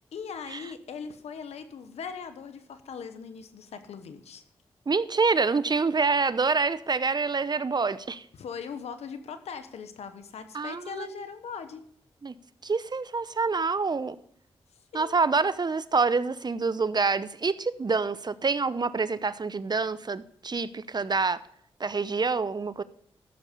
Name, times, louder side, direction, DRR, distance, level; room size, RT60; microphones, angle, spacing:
voice 1, 0.1-4.4 8.4-11.8 14.9-15.2, left 6 dB, 80° left, 9 dB, 1.1 m, -40 dB
voice 2, 4.9-8.2 10.5-11.1 12.2-12.3 12.6-14.2 14.9-21.4 21.8-22.8, right 4 dB, 40° right, 16 dB, 0.7 m, -26 dB
13.5 x 7.2 x 5.3 m, 0.66 s
supercardioid pair, 40°, 11 cm